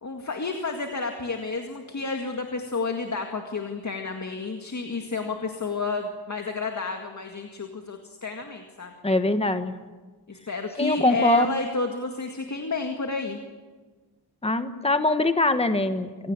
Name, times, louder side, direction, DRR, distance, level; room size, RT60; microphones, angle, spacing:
voice 1, 0.0-8.9 10.3-13.4, left 4 dB, 45° left, 3 dB, 2.0 m, -31 dB
voice 2, 9.0-9.7 10.8-11.6 14.4-16.3, left 2 dB, 15° left, 9 dB, 1.3 m, -23 dB
26.0 x 17.0 x 8.8 m, 1.3 s
wide cardioid pair, 135°, 40 cm